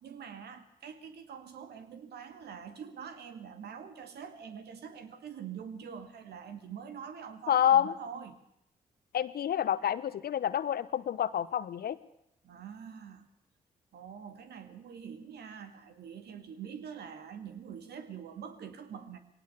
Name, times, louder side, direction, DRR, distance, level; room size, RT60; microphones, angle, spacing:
voice 1, 0.0-8.4 12.4-13.3 13.9-19.2, right 7 dB, 65° right, 8 dB, 2.2 m, -45 dB
voice 2, 7.5-7.9 9.1-12.0, left 10 dB, 55° left, 16 dB, 1.0 m, -28 dB
21.0 x 18.0 x 7.0 m, 0.77 s
hypercardioid pair, 40°, 18 cm